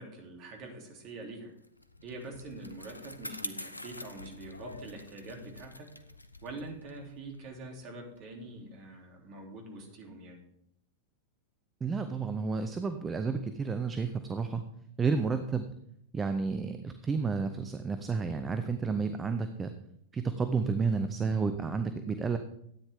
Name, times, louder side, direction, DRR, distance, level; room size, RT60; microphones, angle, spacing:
voice 1, 0.0-1.5 2.0-5.9 6.4-10.4, right 2 dB, 40° right, 1 dB, 3.0 m, -45 dB
Bicycle, 1.6-8.4, left 1 dB, 85° left, 0.6 m, -46 dB
voice 2, 11.8-14.6 15.0-15.7 16.1-19.7 20.1-22.4, right 5 dB, 15° right, 9 dB, 0.7 m, -31 dB
13.0 x 9.3 x 3.6 m, 0.73 s
figure-of-eight pair, 90°, 0 cm